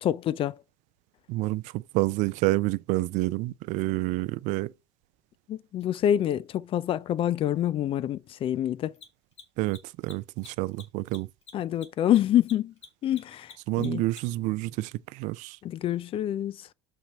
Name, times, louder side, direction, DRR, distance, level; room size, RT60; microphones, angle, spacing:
voice 1, 0.0-0.6 5.5-8.9 11.5-12.7 13.0-14.0 15.6-16.6, left 11 dB, 40° left, 0.4 m, -26 dB
voice 2, 1.3-4.7 9.6-11.3 13.7-15.6, right 19 dB, 60° right, 0.4 m, -28 dB
Mechanisms, 5.8-5.9 8.9-14.5, left 6 dB, 90° left, 1.6 m, -49 dB
6.5 x 4.2 x 5.0 m
hypercardioid pair, 80°, 14 cm